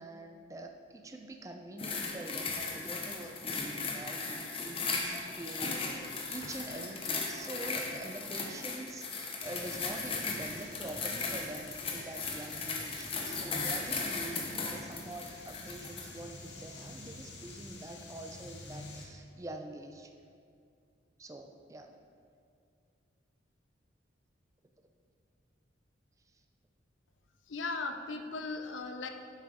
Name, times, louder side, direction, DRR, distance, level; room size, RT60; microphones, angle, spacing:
voice 1, 0.0-20.1 21.2-21.9, right 1 dB, 15° right, 4 dB, 0.4 m, -45 dB
sound 1, 1.8-16.1 16.8-16.9, left 4 dB, 30° left, 0.8 m, -37 dB
sound 2, 9.4-19.1, left 2 dB, 65° left, 1.0 m, -49 dB
voice 2, 27.5-29.1, left 3 dB, 85° left, 6 dB, 0.6 m, -37 dB
7.3 x 5.8 x 4.9 m, 2.3 s
head